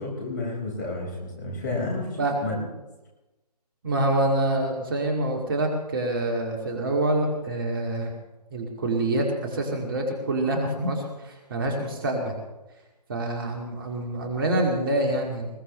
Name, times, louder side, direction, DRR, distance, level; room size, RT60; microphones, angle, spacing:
voice 1, 0.0-2.6, left 2 dB, 30° left, -1 dB, 4.9 m, -31 dB
voice 2, 3.8-8.1 8.5-12.4 13.1-15.5, right 1 dB, 35° right, 1 dB, 2.2 m, -26 dB
20.5 x 18.0 x 3.2 m, 1.1 s
figure-of-eight pair, 150°, 21 cm